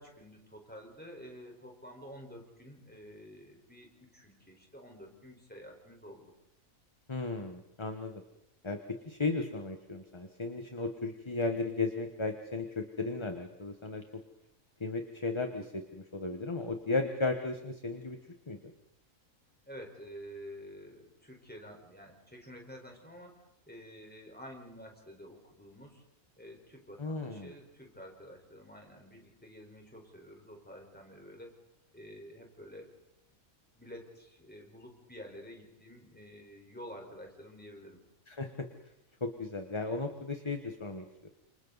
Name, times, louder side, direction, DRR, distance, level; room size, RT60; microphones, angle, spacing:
voice 1, 0.0-6.3 19.7-23.4 23.7-26.0 26.4-31.6 31.9-32.9 33.7-38.0, equal, 5° left, 0 dB, 4.5 m, -50 dB
voice 2, 7.1-8.2 8.6-14.0 14.8-18.2 18.5-18.6 27.0-27.5 38.3-38.7 39.2-41.0, left 3 dB, 20° left, 5 dB, 1.2 m, -35 dB
29.5 x 27.5 x 4.1 m, 0.81 s
omnidirectional pair, 1.4 m